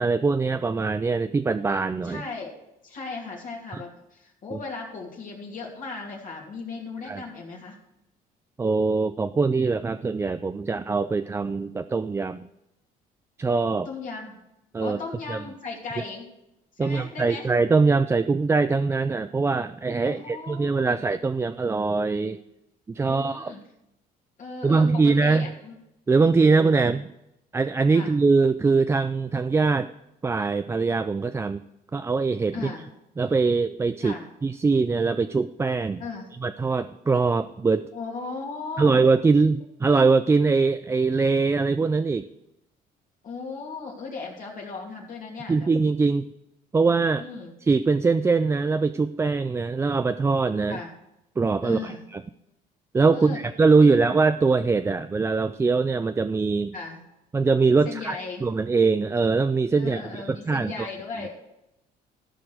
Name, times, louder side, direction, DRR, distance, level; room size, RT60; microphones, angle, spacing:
voice 1, 0.0-2.2 3.7-3.8 4.5-4.6 7.0-7.2 8.6-12.5 13.4-13.9 14.7-15.0 15.3-15.4 16.8-22.4 22.9-23.5 24.6-25.5 26.1-27.1 27.5-29.9 30.2-31.6 31.9-32.7 33.2-34.2 34.4-36.0 36.4-37.9 38.8-42.3 45.5-46.3 46.7-47.2 47.6-50.8 51.4-52.2 52.9-56.7 57.3-60.9, right 4 dB, 15° right, 11 dB, 0.3 m, -22 dB
voice 2, 2.0-2.5 2.8-7.8 13.8-14.4 14.8-16.3 16.7-17.5 20.0-21.0 23.0-23.6 24.4-25.7 26.2-26.8 27.9-28.1 32.5-32.9 34.0-34.2 36.0-36.3 37.9-39.0 43.2-45.7 47.2-47.5 50.7-50.9 51.6-52.0 53.1-53.4 53.8-54.1 56.7-57.0 57.8-58.4 59.8-61.3, left 4 dB, 50° left, -2 dB, 2.7 m, -37 dB
13.5 x 5.1 x 6.2 m, 0.88 s
cardioid pair, 110°, 17 cm